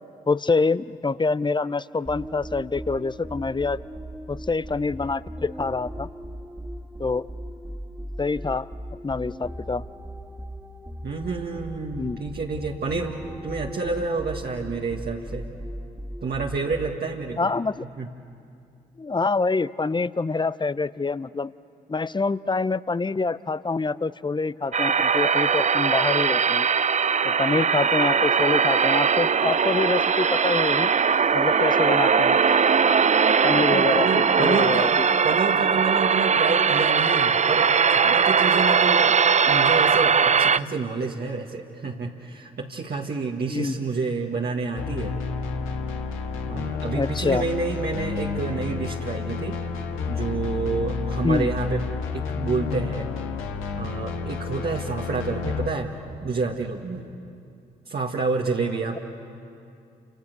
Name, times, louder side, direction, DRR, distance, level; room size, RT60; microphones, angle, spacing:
voice 1, 0.3-3.8 4.3-6.1 7.0-7.3 8.2-8.7 9.0-9.8 12.0-12.2 17.4-17.9 19.0-21.5 21.9-26.7 27.2-30.9 31.3-32.4 33.4-35.0 43.5-43.8 47.0-47.4 51.2-51.5, left 3 dB, 20° left, 18 dB, 0.7 m, -26 dB
sound 1, 2.1-17.2, equal, 5° right, 2.3 m, -38 dB
voice 2, 11.0-15.4 16.2-17.5 17.8-18.1 33.5-35.0 35.2-39.2 39.5-45.1 46.5-49.6 50.0-51.8 52.1-53.1 53.7-55.9 56.2-57.0 57.9-59.0, right 4 dB, 50° right, -1 dB, 1.9 m, -29 dB
sound 2, 24.7-40.6, right 6 dB, 35° right, 0.6 m, -20 dB
sound 3, 44.7-55.7, left 5 dB, 80° left, 1.6 m, -30 dB
29.0 x 26.5 x 6.8 m, 2.5 s
hypercardioid pair, 40°, 21 cm